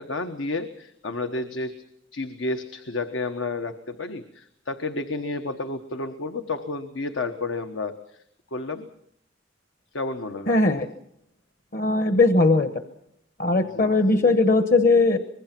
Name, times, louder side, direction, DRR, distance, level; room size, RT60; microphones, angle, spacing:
voice 1, 0.0-1.8 2.1-8.2 8.5-8.9 9.9-10.6 13.7-13.9, left 3 dB, 85° left, 7 dB, 1.3 m, -31 dB
voice 2, 10.5-10.9 11.7-12.7 13.4-15.2, left 3 dB, 50° left, 10 dB, 1.1 m, -19 dB
25.0 x 21.0 x 6.0 m, 0.74 s
head